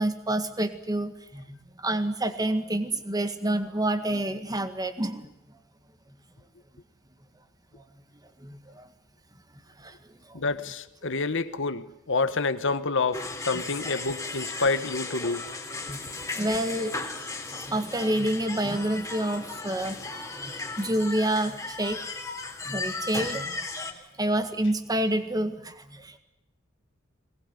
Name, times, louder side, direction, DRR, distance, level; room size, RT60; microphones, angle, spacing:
voice 1, 0.0-5.3 8.4-8.9 9.8-9.9 10.3-10.4 11.0-11.1 13.5-13.6 15.8-16.0 16.3-16.9 17.7-20.0 20.4-22.0 22.7-23.6 24.0-26.2, right 1 dB, 20° right, 9 dB, 1.9 m, -28 dB
voice 2, 10.3-15.4, left 3 dB, 65° left, 11 dB, 1.4 m, -28 dB
sound 1, 13.1-23.9, left 3 dB, 15° left, 3.3 m, -36 dB
22.0 x 19.5 x 9.9 m, 0.88 s
head